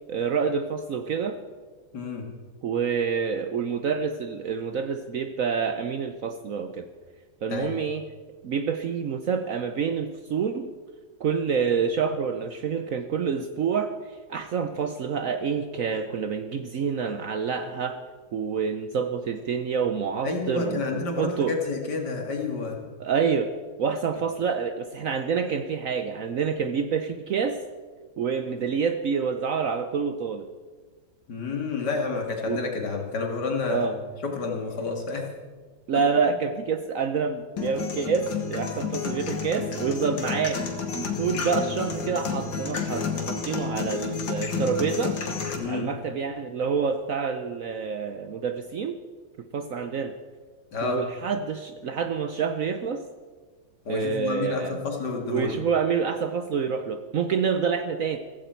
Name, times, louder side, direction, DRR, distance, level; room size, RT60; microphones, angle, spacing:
voice 1, 0.1-1.4 2.6-6.9 7.4-8.0 8.4-10.7 11.2-13.9 14.3-18.0 18.3-21.5 23.0-23.5 23.8-27.6 28.2-30.5 32.4-32.6 33.7-34.0 35.9-40.6 40.9-45.2 45.7-49.0 49.5-50.1 50.8-53.0 53.9-54.8 55.3-58.2, right 6 dB, 60° right, 8 dB, 0.9 m, -27 dB
voice 2, 1.9-2.3 7.5-7.8 20.2-22.8 31.3-33.9 34.2-35.3 45.5-45.9 50.7-51.0 53.9-55.6, left 4 dB, 65° left, 2 dB, 2.6 m, -29 dB
sound 1, 37.6-45.6, left 5 dB, 85° left, 2.3 m, -30 dB
15.5 x 15.0 x 4.5 m, 1.4 s
omnidirectional pair, 2.0 m